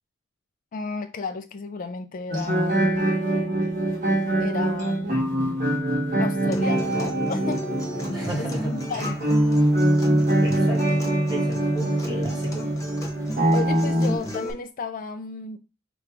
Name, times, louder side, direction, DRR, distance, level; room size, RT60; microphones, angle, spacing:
voice 1, 0.7-3.1 4.4-5.8 6.2-7.7 8.4-9.2 13.5-15.6, left 4 dB, 40° left, 0.3 m, -33 dB
sound 1, 2.3-14.2, right 1 dB, 40° right, 1.1 m, -23 dB
Acoustic guitar, 6.5-14.5, equal, 15° left, 1.0 m, -34 dB
voice 2, 8.1-8.7 9.0-9.1 10.4-11.0 11.3-12.7, right 1 dB, 20° right, 1.7 m, -32 dB
4.9 x 2.3 x 4.4 m
head